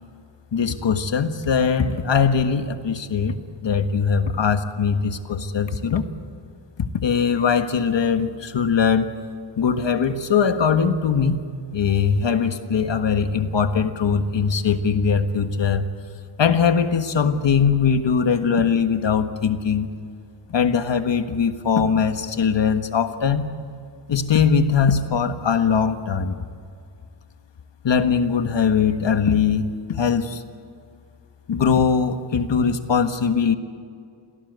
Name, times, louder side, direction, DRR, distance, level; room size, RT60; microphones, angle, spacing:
voice 1, 0.5-3.3 3.6-6.1 6.8-9.1 9.6-11.4 11.7-15.9 16.4-19.9 20.5-23.5 24.1-26.3 27.8-30.4 31.5-33.6, left 6 dB, 80° left, 8 dB, 1.6 m, -21 dB
27.5 x 17.5 x 8.2 m, 2.3 s
wide cardioid pair, 115°, 43 cm